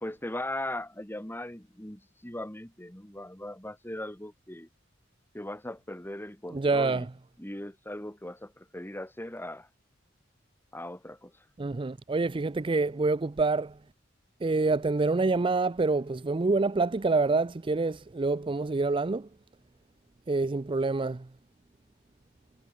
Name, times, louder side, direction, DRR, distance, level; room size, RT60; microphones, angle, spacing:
voice 1, 0.0-4.7 5.3-7.1 7.4-9.7 10.7-11.3, left 1 dB, 10° left, 2.2 m, -39 dB
voice 2, 6.5-7.1 11.6-13.8 14.4-19.3 20.3-21.3, right 3 dB, 25° right, 0.5 m, -27 dB
head